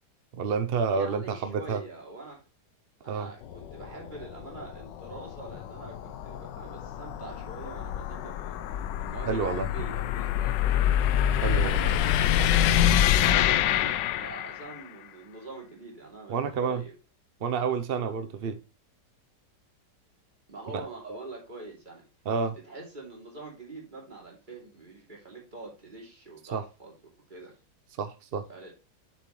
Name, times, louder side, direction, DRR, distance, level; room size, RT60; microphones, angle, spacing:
voice 1, 0.3-1.8 3.1-3.3 9.3-9.7 11.4-11.8 16.3-16.8 17.4-18.6 20.7-20.8 22.3-22.6 26.5-26.6 28.0-28.4, right 5 dB, 70° right, 0.5 m, -29 dB
voice 2, 0.9-2.4 3.0-10.9 11.4-16.9 20.5-22.1 22.4-26.9 27.3-27.5 28.5-28.7, right 3 dB, 25° right, 2.9 m, -44 dB
sound 1, 3.4-14.8, left 10 dB, 85° left, 1.2 m, -26 dB
7.5 x 7.1 x 3.1 m
omnidirectional pair, 1.9 m